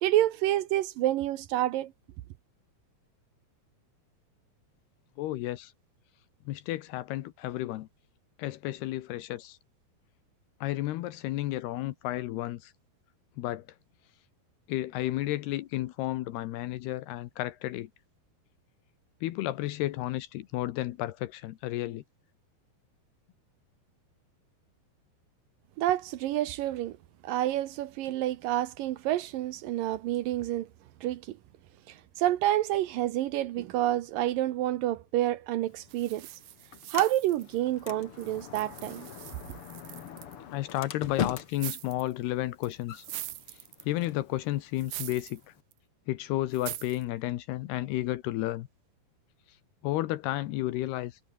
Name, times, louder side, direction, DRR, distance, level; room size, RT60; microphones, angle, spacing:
voice 1, 0.0-1.9 25.8-27.0 27.2-30.7 31.0-31.4 31.9-36.3 36.9-39.1, right 14 dB, 70° right, 2.2 m, -28 dB
voice 2, 5.2-5.7 6.5-7.9 8.4-9.6 10.6-12.7 13.4-13.7 14.7-17.9 19.2-22.0 40.5-43.0 43.8-45.5 46.1-48.7 49.8-51.2, left 15 dB, 80° left, 2.9 m, -32 dB
Sliding door, 35.6-45.6, left 9 dB, 55° left, 1.5 m, -42 dB
sound 1, 35.9-37.8 38.2-40.4 41.5-42.1 42.6-44.1 44.8-45.4 45.7-45.8 46.5-47.0, right 16 dB, 85° right, 1.7 m, -43 dB
omnidirectional pair, 4.8 m